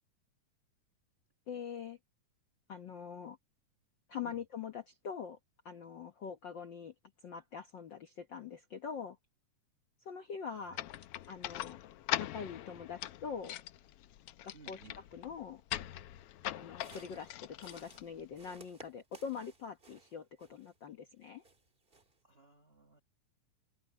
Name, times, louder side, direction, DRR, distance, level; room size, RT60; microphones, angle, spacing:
voice 1, 1.5-2.0 2.7-3.4 4.1-5.4 5.6-6.9 7.2-9.2 10.0-10.8 11.3-11.8 12.2-13.5 14.4-14.8 15.1-15.6 16.6-21.4, left 6 dB, 70° left, 1.1 m, -43 dB
voice 2, 10.5-10.9 14.5-15.0 22.2-23.0, right 5 dB, 85° right, 0.5 m, -58 dB
sound 1, 10.7-18.6, left 13 dB, 85° left, 1.3 m, -42 dB
sound 2, 16.7-20.9 21.2-22.2, right 3 dB, 20° right, 1.8 m, -59 dB
omnidirectional pair, 3.6 m